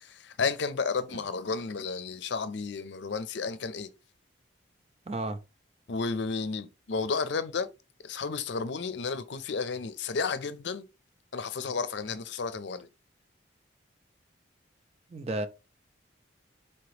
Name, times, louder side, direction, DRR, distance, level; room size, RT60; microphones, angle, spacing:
voice 1, 0.1-3.9 5.9-7.7 8.0-10.8 11.3-12.9, left 4 dB, 65° left, 0.5 m, -32 dB
voice 2, 5.1-5.4 15.1-15.5, right 2 dB, 30° right, 0.4 m, -32 dB
4.3 x 2.9 x 3.2 m
head